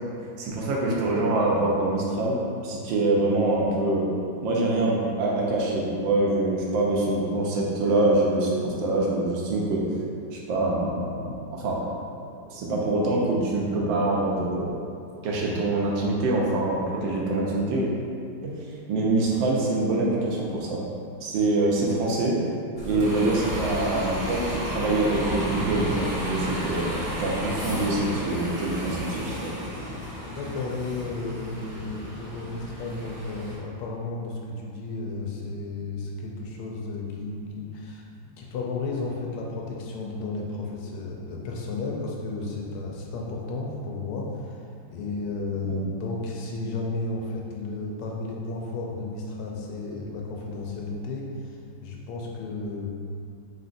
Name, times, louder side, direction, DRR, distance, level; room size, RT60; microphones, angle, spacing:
voice 1, 0.4-2.4 2.6-4.1 4.4-9.9 10.3-11.8 12.5-14.7 15.2-17.9 18.4-20.8 21.2-22.4 22.8-29.5 45.6-45.8, right 2 dB, 70° right, -3 dB, 1.3 m, -25 dB
Bus, 22.8-33.6, equal, 20° right, 0.8 m, -33 dB
voice 2, 30.2-38.0 38.4-52.9, left 3 dB, 90° left, -1 dB, 1.5 m, -33 dB
4.1 x 3.9 x 2.6 m, 2.5 s
omnidirectional pair, 2.3 m